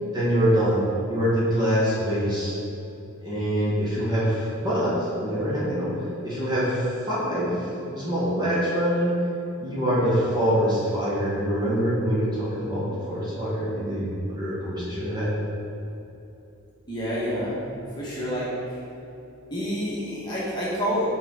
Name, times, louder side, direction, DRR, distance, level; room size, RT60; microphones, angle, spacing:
voice 1, 0.1-0.8 1.1-2.5 3.2-5.9 6.2-9.1 9.6-15.3, equal, 20° right, -9 dB, 1.3 m, -25 dB
voice 2, 16.9-17.5 17.9-18.8 19.5-21.1, equal, 20° left, -8 dB, 1.3 m, -28 dB
6.5 x 4.5 x 3.7 m, 2.8 s
head